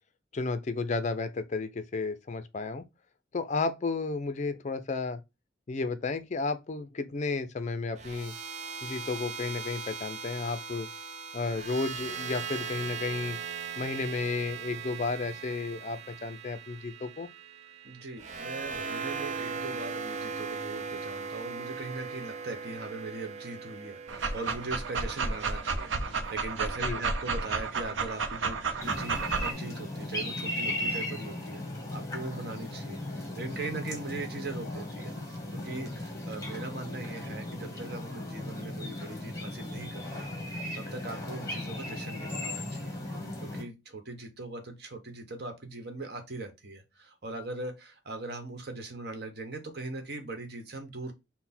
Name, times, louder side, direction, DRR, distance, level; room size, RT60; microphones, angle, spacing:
voice 1, 0.3-2.8 3.3-5.2 5.7-8.3 8.8-10.9 11.3-13.4 13.8-17.3 26.8-27.0, left 3 dB, 40° left, 0.4 m, -32 dB
sound 1, 8.0-26.1, right 5 dB, 35° right, 0.5 m, -39 dB
voice 2, 17.8-43.0 43.4-51.1, right 2 dB, 55° right, 1.1 m, -40 dB
Dog, 24.1-29.5, right 4 dB, 85° right, 0.6 m, -32 dB
sound 2, 28.8-43.6, left 1 dB, 15° left, 1.2 m, -37 dB
5.8 x 2.1 x 4.2 m
head